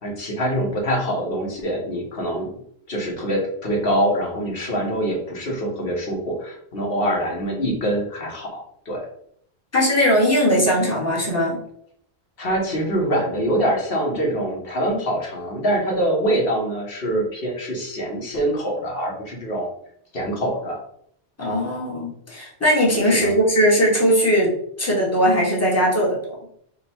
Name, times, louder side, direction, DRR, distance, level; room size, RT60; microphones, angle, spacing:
voice 1, 0.0-2.5 2.9-9.1 12.4-19.7 20.1-20.8 23.0-23.3, right 1 dB, 65° left, -1 dB, 1.3 m, -24 dB
voice 2, 9.7-11.6 21.4-24.5 24.8-26.4, equal, 15° left, -4 dB, 1.0 m, -19 dB
3.8 x 2.1 x 4.2 m, 0.68 s
omnidirectional pair, 1.1 m